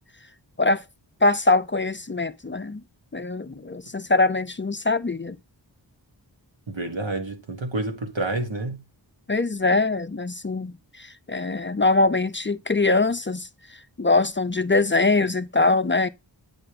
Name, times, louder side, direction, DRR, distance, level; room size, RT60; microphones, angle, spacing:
voice 1, 1.2-2.8 3.1-5.4 9.3-13.5 14.0-16.1, left 3 dB, 25° left, 0.4 m, -22 dB
voice 2, 6.7-8.8, right 2 dB, 90° right, 1.5 m, -29 dB
8.8 x 3.0 x 4.9 m
wide cardioid pair, 55°, 44 cm